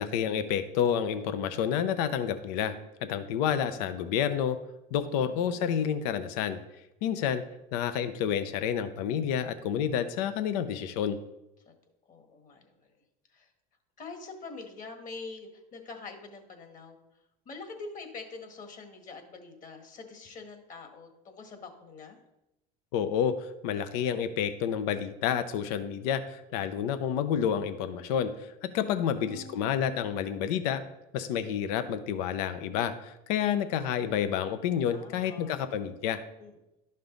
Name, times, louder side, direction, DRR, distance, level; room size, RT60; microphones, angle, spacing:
voice 1, 0.0-2.8 3.0-4.6 4.9-6.6 7.0-7.4 7.7-11.2 22.9-30.8 31.1-36.2, left 8 dB, 80° left, 11 dB, 0.7 m, -29 dB
voice 2, 12.1-12.7 13.3-13.5 14.0-17.0 17.4-22.2 28.9-29.7 34.9-35.5 36.4-36.6, left 3 dB, 40° left, 5 dB, 1.7 m, -45 dB
11.5 x 5.4 x 3.9 m, 0.92 s
supercardioid pair, 105°, 20 cm